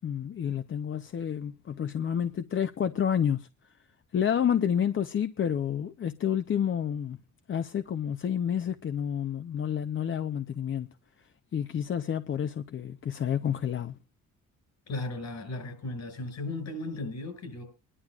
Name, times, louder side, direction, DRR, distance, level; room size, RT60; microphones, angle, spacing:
voice 1, 0.0-3.5 4.1-7.2 7.5-10.9 11.5-14.0, left 8 dB, 40° left, 0.6 m, -29 dB
voice 2, 14.9-17.6, left 2 dB, 65° left, 5.6 m, -36 dB
24.0 x 11.0 x 2.4 m
cardioid pair, 90°, 30 cm